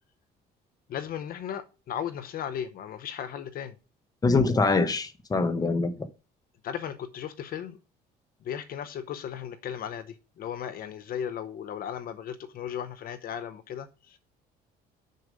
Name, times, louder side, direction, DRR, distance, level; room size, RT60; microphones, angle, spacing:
voice 1, 0.9-3.8 6.6-7.8 8.4-14.2, left 9 dB, 60° left, 0.8 m, -36 dB
voice 2, 4.2-5.9, left 3 dB, 20° left, 1.1 m, -24 dB
6.9 x 6.5 x 5.2 m
cardioid pair, 110°, 17 cm